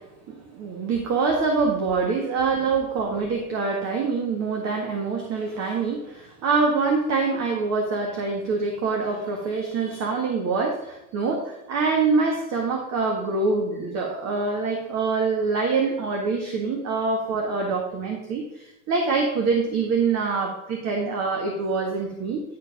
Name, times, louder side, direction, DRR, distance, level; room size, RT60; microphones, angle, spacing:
voice 1, 0.0-22.4, right 4 dB, 40° right, 2 dB, 1.7 m, -25 dB
11.0 x 4.7 x 5.2 m, 0.88 s
supercardioid pair, 120°, 42 cm